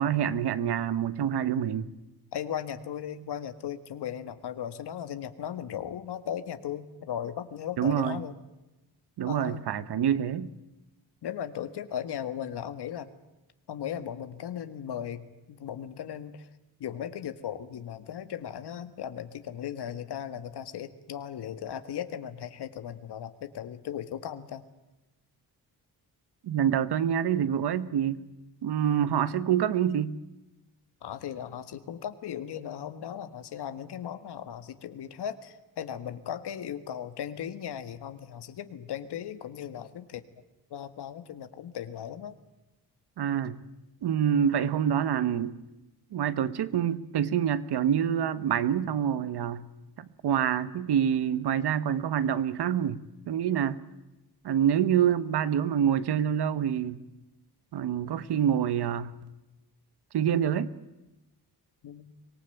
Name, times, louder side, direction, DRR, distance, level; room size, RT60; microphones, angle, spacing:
voice 1, 0.0-1.9 7.8-8.2 9.2-10.5 26.4-28.2 28.6-30.2 43.2-43.6 44.0-45.5 46.1-49.7 50.0-53.8 54.4-57.0 57.7-59.1 60.1-60.7, right 9 dB, 85° right, 1.3 m, -26 dB
voice 2, 2.3-8.3 9.2-9.6 11.2-13.1 13.7-16.5 16.8-24.6 31.0-40.2 40.7-42.4 61.8-62.1, left 9 dB, 90° left, 1.8 m, -37 dB
24.5 x 19.5 x 9.1 m
wide cardioid pair, 175°, 39 cm